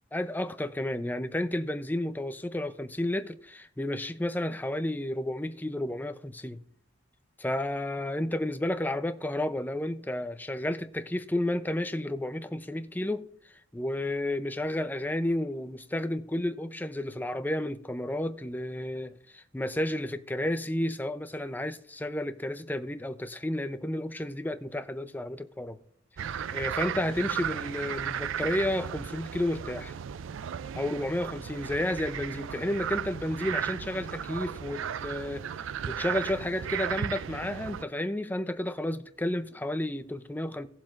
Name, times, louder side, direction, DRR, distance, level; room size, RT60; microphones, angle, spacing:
voice 1, 0.1-6.6 7.4-13.3 13.7-25.8 26.3-29.9 30.8-35.5 35.9-40.7, left 1 dB, 10° left, 0.6 m, -32 dB
sound 1, 26.2-37.8, right 8 dB, 75° right, 0.4 m, -35 dB
18.0 x 7.4 x 2.5 m
head